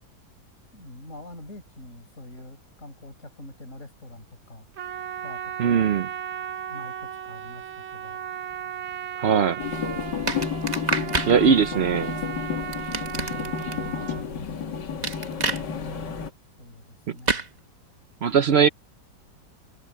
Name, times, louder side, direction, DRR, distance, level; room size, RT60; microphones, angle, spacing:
voice 1, 0.7-4.7 5.2-5.9 6.7-8.2 9.5-10.0 10.8-11.7 12.1-12.5 13.7-13.9 15.7-16.2 16.6-17.5, left 1 dB, 40° left, 5.9 m, -45 dB
Trumpet, 4.7-14.2, right 9 dB, 55° right, 0.8 m, -36 dB
voice 2, 5.6-6.1 9.2-9.6 11.3-12.1 18.2-18.7, right 7 dB, 85° right, 0.5 m, -20 dB
sound 1, 9.6-16.3, left 7 dB, 65° left, 2.4 m, -31 dB
sound 2, 10.3-11.3 12.7-13.7 15.0-15.6 17.3-17.5, right 3 dB, 25° right, 1.2 m, -27 dB
omnidirectional pair, 2.0 m